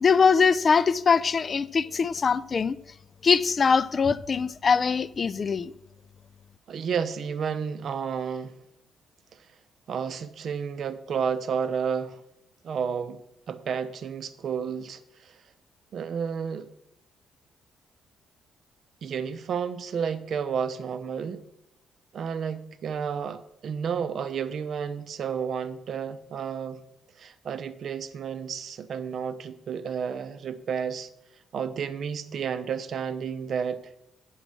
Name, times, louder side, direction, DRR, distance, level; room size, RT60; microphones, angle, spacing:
voice 1, 0.0-2.8 3.2-5.7, left 5 dB, 40° left, 0.4 m, -22 dB
voice 2, 6.7-8.5 9.9-12.2 12.6-13.2 13.5-15.4 15.9-16.7 19.0-21.4 22.1-26.8 27.2-31.1 31.5-33.9, right 7 dB, 60° right, 0.7 m, -31 dB
8.8 x 6.4 x 6.1 m
cardioid pair, 90°, 0 cm